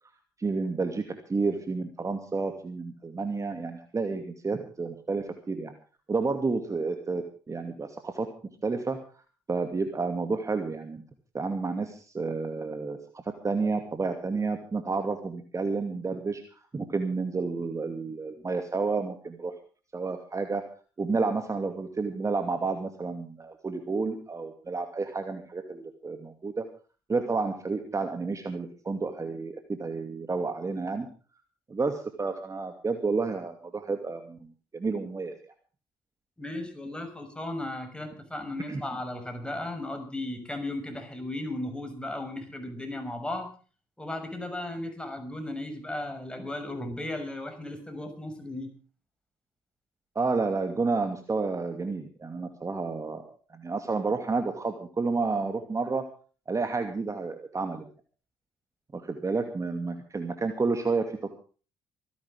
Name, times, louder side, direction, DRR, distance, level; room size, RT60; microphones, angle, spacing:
voice 1, 0.4-5.7 6.1-8.3 8.6-9.0 9.5-11.0 11.3-13.0 13.4-16.4 16.7-19.5 19.9-20.6 21.0-26.7 27.1-31.1 31.7-34.4 34.7-35.3 38.7-38.8 50.1-53.2 53.5-56.0 56.5-57.8 58.9-61.3, right 4 dB, 25° right, 6 dB, 2.6 m, -30 dB
voice 2, 36.4-43.5 44.0-48.7, left 1 dB, 10° left, 5 dB, 6.2 m, -35 dB
26.5 x 11.0 x 3.6 m, 0.38 s
figure-of-eight pair, 50°, 12 cm